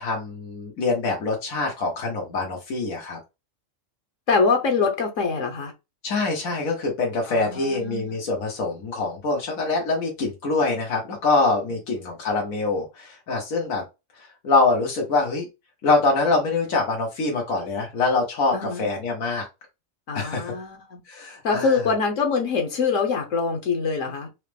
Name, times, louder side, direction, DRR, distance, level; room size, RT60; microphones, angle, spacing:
voice 1, 0.0-3.2 6.0-13.8 14.4-15.5 15.8-19.5 20.1-20.5 21.1-21.8, left 3 dB, 85° left, 1.6 m, -24 dB
voice 2, 4.3-5.7 7.3-8.2 18.5-18.9 20.1-21.0 21.4-24.3, left 4 dB, 70° left, 1.3 m, -24 dB
4.8 x 2.0 x 3.3 m
omnidirectional pair, 1.4 m